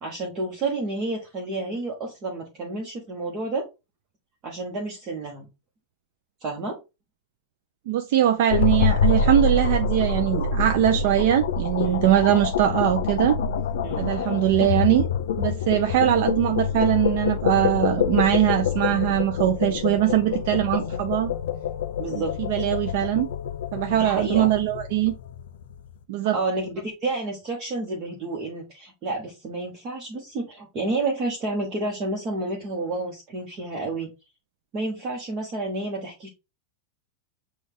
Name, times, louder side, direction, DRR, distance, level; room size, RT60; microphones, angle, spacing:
voice 1, 0.0-3.7 4.4-5.5 6.4-6.8 11.8-12.0 13.8-14.1 22.0-22.3 23.9-24.5 26.3-34.1 34.7-36.3, right 2 dB, 25° right, 1.0 m, -30 dB
voice 2, 7.9-13.4 14.0-15.1 15.4-21.3 22.1-23.3 23.7-25.1 26.1-26.4, right 12 dB, 50° right, 0.4 m, -22 dB
sound 1, 8.5-25.7, left 5 dB, 85° left, 0.5 m, -26 dB
6.2 x 2.3 x 3.5 m
supercardioid pair, 175°, 0 cm